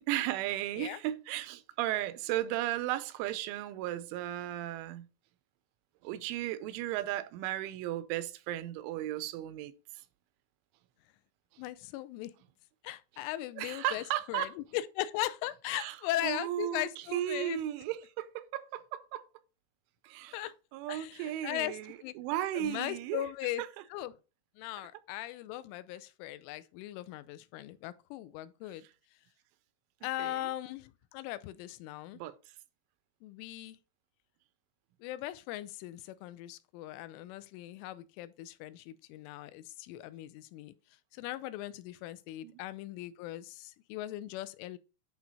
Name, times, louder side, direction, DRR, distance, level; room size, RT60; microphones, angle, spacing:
voice 1, 0.1-5.1 6.0-9.7 13.6-14.5 15.8-16.0 16.2-19.2 20.0-20.5 20.7-23.3 23.6-23.7 30.2-30.3 32.1-32.3 42.4-42.5, right 13 dB, 85° right, 3.1 m, -35 dB
voice 2, 11.6-12.3 12.8-17.6 20.3-20.5 20.9-22.1 22.6-23.6 23.9-24.2 24.6-28.9 30.0-32.2 33.2-33.8 35.0-40.7 41.1-44.8, left 15 dB, 90° left, 3.2 m, -39 dB
10.5 x 4.0 x 4.1 m
omnidirectional pair, 5.5 m